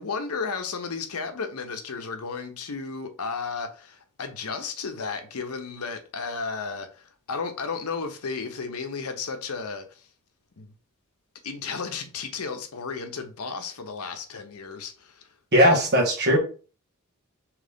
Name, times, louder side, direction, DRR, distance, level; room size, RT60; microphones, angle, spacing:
voice 1, 0.0-10.1 10.6-10.7 11.4-15.3, left 5 dB, 80° left, 0.8 m, -33 dB
voice 2, 15.5-16.4, equal, 50° right, 1.5 m, -18 dB
3.8 x 3.1 x 3.5 m
head